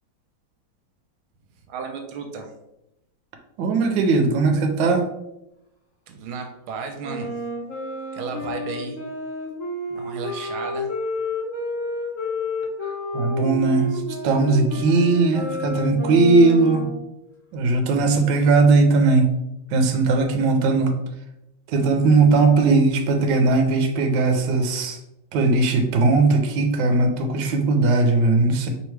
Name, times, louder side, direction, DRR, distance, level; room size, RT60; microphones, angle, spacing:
voice 1, 1.7-2.5 6.1-7.4 8.1-9.0 9.9-10.9, right 5 dB, 90° right, 4 dB, 1.5 m, -33 dB
voice 2, 3.6-5.1 13.1-16.9 17.5-19.3 19.7-21.0 21.7-25.0 25.3-28.7, right 3 dB, 70° right, 4 dB, 1.3 m, -19 dB
Wind instrument woodwind instrument, 7.0-17.0, left 2 dB, 40° left, 1.5 m, -30 dB
4.5 x 3.5 x 3.1 m, 0.88 s
omnidirectional pair, 2.3 m